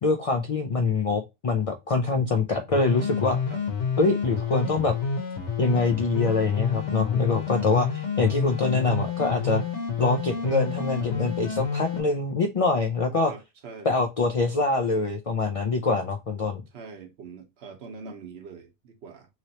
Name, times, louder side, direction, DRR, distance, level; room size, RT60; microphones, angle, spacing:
voice 1, 0.0-3.4 4.0-5.0 5.6-9.6 10.0-13.3 13.8-16.6, left 3 dB, 65° left, 0.3 m, -24 dB
sound 1, 2.7-12.0, left 5 dB, 85° left, 1.2 m, -29 dB
voice 2, 13.3-13.9 16.7-19.3, right 5 dB, 70° right, 1.0 m, -43 dB
3.1 x 2.9 x 2.7 m
omnidirectional pair, 1.2 m